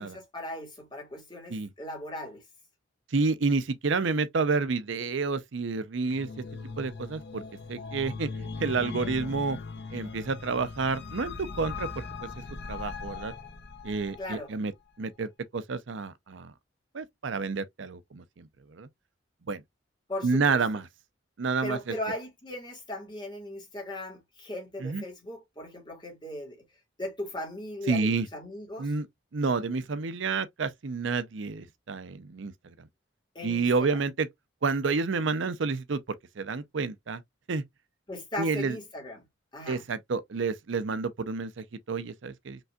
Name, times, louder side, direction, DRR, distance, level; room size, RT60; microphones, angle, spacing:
voice 1, 0.0-2.4 14.2-14.5 20.1-20.6 21.6-26.6 27.0-28.9 33.3-34.0 38.1-39.2 39.5-39.8, left 1 dB, 25° left, 2.1 m, -38 dB
voice 2, 3.1-6.3 6.8-7.4 7.7-8.3 8.6-9.6 9.9-12.3 12.7-13.3 13.8-14.7 15.0-16.5 16.9-18.9 19.5-19.6 20.2-20.9 21.4-21.9 24.8-25.0 27.9-28.3 28.8-29.1 29.3-32.9 33.4-34.3 34.6-36.0 36.4-37.2 37.5-37.6 38.4-38.8 39.7-42.6, right 4 dB, 65° right, 0.6 m, -29 dB
sound 1, 6.0-14.3, left 4 dB, 55° left, 0.9 m, -39 dB
5.3 x 3.4 x 2.3 m
head